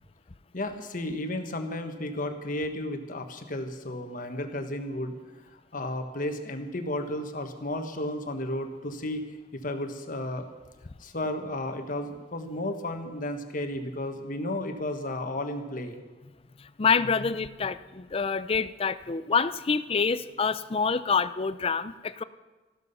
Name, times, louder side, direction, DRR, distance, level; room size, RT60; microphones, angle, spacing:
voice 1, 0.5-5.2 5.5-9.2 9.5-10.5 11.0-16.0, left 1 dB, 50° left, 6 dB, 1.4 m, -33 dB
voice 2, 16.8-22.2, left 5 dB, 30° left, 15 dB, 0.5 m, -27 dB
14.5 x 12.5 x 5.5 m, 1.2 s
head